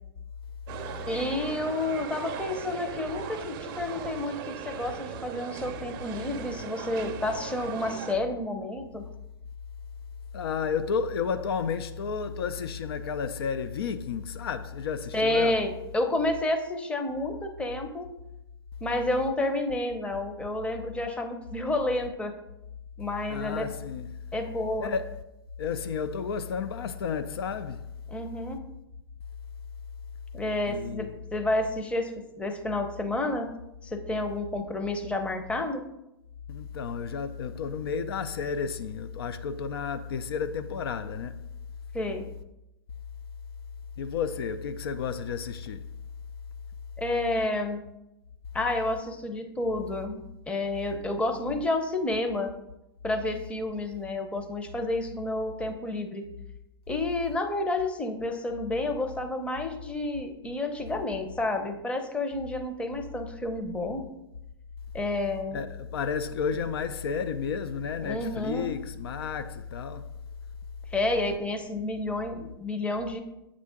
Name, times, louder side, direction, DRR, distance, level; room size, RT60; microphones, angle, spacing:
sound 1, 0.7-8.1, right 7 dB, 55° right, 0.5 m, -38 dB
voice 1, 1.1-9.0 15.1-18.1 18.8-22.3 23.0-23.7 24.3-24.9 28.1-28.6 30.3-32.1 32.4-33.5 33.8-35.8 41.9-42.2 47.0-47.8 48.5-52.5 53.0-56.2 56.9-64.0 64.9-65.6 68.0-68.7 70.9-73.2, left 2 dB, 10° left, 0.6 m, -30 dB
voice 2, 10.3-15.6 23.3-24.3 24.8-25.2 25.6-27.9 30.7-31.2 36.5-41.4 44.0-45.9 65.5-70.1, left 6 dB, 75° left, 0.4 m, -32 dB
7.5 x 3.6 x 3.6 m
hypercardioid pair, 110°, 13 cm